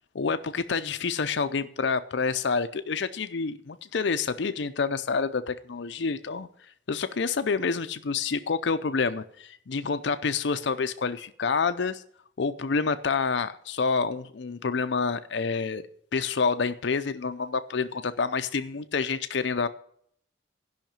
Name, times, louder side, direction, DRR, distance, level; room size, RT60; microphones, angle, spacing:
voice 1, 0.1-12.0 12.4-15.9 16.1-19.7, left 5 dB, 70° left, 11 dB, 0.5 m, -28 dB
12.0 x 5.7 x 8.7 m, 0.65 s
head